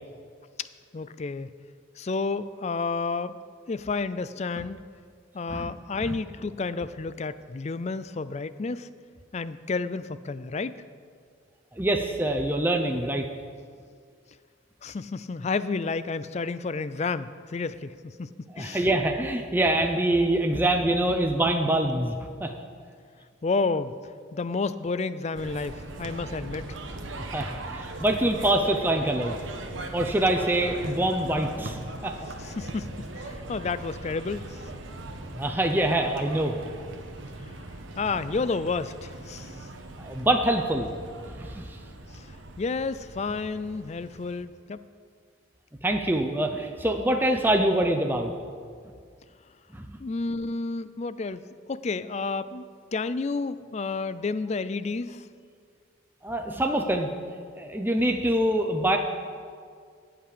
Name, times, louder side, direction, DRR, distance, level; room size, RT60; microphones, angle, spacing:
voice 1, 0.9-1.5 2.0-3.4 3.7-4.8 5.3-8.9 9.3-10.8 14.8-18.9 23.4-23.9 24.3-26.7 32.4-34.6 38.0-39.6 42.1-42.3 42.6-44.8 50.0-51.4 51.7-52.6 52.9-55.2, left 4 dB, 35° left, 14 dB, 0.4 m, -31 dB
voice 2, 11.7-13.3 18.5-22.1 22.4-22.5 27.2-29.4 29.9-32.2 35.3-36.6 40.0-40.9 41.4-41.8 45.8-48.3 49.7-49.9 56.2-57.1 57.6-59.0, right 1 dB, 10° right, 4 dB, 0.6 m, -25 dB
sound 1, 25.3-44.4, right 2 dB, 75° right, 1.1 m, -40 dB
15.5 x 5.9 x 8.4 m, 2.1 s
head